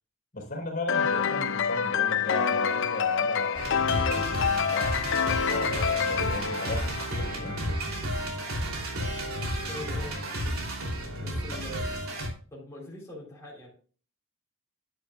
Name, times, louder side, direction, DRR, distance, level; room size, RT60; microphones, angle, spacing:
voice 1, 0.3-5.0 5.4-6.8 7.2-7.5, left 2 dB, 40° left, 2 dB, 4.2 m, -36 dB
sound 1, 0.9-7.5, left 7 dB, 60° left, 0.6 m, -27 dB
sound 2, 3.6-12.3, equal, 85° right, 3.0 m, -32 dB
voice 2, 9.4-10.2 11.2-11.8 12.5-13.7, left 1 dB, 15° left, -6 dB, 3.5 m, -42 dB
10.5 x 9.9 x 2.3 m, 0.40 s
head